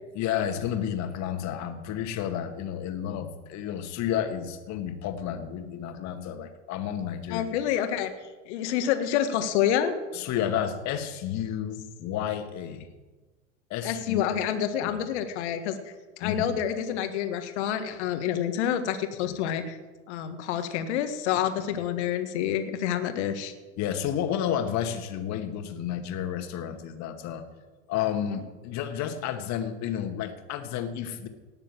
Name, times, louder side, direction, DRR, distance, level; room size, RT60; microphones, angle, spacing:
voice 1, 0.1-7.5 10.1-12.9 13.7-14.2 14.8-15.0 16.2-16.4 19.2-19.3 21.7-21.8 23.8-27.4 27.9-31.3, left 9 dB, 45° left, 7 dB, 2.0 m, -31 dB
voice 2, 7.3-8.1 8.5-9.9 13.8-19.8 20.1-23.5 28.3-28.4, left 10 dB, 65° left, 8 dB, 1.7 m, -28 dB
18.5 x 6.9 x 7.6 m, 1.2 s
hypercardioid pair, 85°, 37 cm